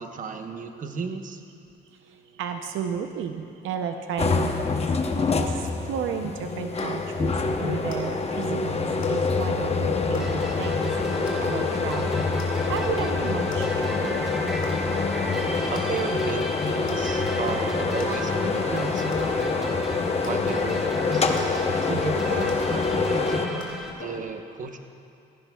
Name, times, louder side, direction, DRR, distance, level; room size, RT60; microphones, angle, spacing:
voice 1, 0.0-1.4 15.7-19.9 20.2-23.7 24.0-24.8, right 5 dB, 40° right, 6 dB, 0.9 m, -34 dB
voice 2, 2.0-10.9 11.4-12.2 12.7-14.3 23.0-23.1, right 8 dB, 80° right, 6 dB, 0.6 m, -33 dB
sound 1, 4.2-23.5, left 4 dB, 30° left, 0.8 m, -26 dB
sound 2, 6.2-24.1, left 3 dB, 75° left, 2.2 m, -36 dB
sound 3, 10.2-23.9, equal, ahead, 1.3 m, -35 dB
17.0 x 15.0 x 2.3 m, 2.5 s
cardioid pair, 90°, 20 cm